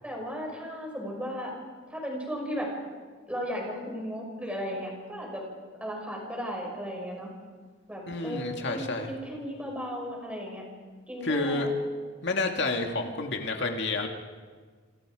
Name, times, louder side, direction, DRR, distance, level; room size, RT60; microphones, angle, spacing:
voice 1, 0.0-1.5 1.9-2.7 3.3-5.4 5.8-7.3 7.9-10.6 11.1-11.7 12.6-13.2, equal, 5° right, -1 dB, 6.3 m, -35 dB
voice 2, 8.1-9.1 11.2-11.7 12.2-14.1, left 3 dB, 65° left, 3 dB, 2.2 m, -29 dB
28.5 x 25.5 x 5.0 m, 1.5 s
head